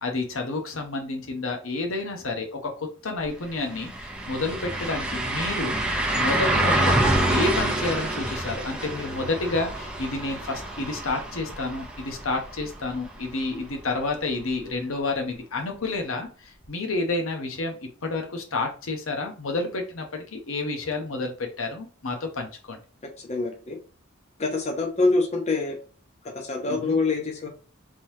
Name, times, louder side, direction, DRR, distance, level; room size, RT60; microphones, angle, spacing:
voice 1, 0.0-2.7 3.0-5.8 6.1-7.0 7.3-17.8 18.0-22.8 26.7-27.0, left 3 dB, 70° left, 3 dB, 0.9 m, -30 dB
sound 1, 3.2-3.3 3.6-13.4 13.8-13.9 16.6-16.7, right 1 dB, 5° right, 0.5 m, -27 dB
voice 2, 23.3-23.8 24.4-25.8 26.3-27.5, left 3 dB, 30° left, 3 dB, 0.7 m, -25 dB
3.7 x 3.1 x 2.7 m, 0.38 s
head